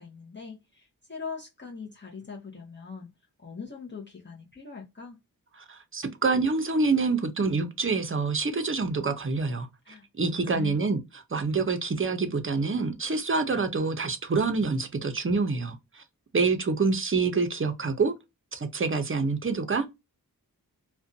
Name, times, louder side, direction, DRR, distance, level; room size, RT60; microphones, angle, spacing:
voice 1, 0.0-3.1 3.4-5.2 9.8-10.0 10.3-10.8, left 5 dB, 30° left, 0.7 m, -41 dB
voice 2, 5.7-11.0 11.3-16.0 16.3-18.1 18.5-19.9, right 4 dB, 35° right, 0.5 m, -27 dB
2.5 x 2.2 x 2.4 m
wide cardioid pair, 55°, 37 cm